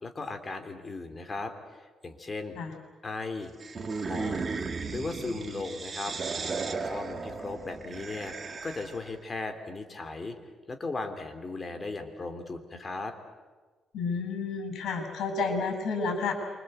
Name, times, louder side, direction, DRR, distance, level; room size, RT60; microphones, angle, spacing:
voice 1, 0.0-2.6 3.0-3.5 4.0-6.1 6.8-8.4 8.6-10.4 10.7-13.1, left 3 dB, 25° left, 6 dB, 3.3 m, -37 dB
sound 1, 3.6-9.1, right 4 dB, 35° right, 2.2 m, -35 dB
voice 2, 13.9-16.3, left 4 dB, 75° left, 5 dB, 7.5 m, -30 dB
28.0 x 25.5 x 8.1 m, 1.4 s
cardioid pair, 115°, 0 cm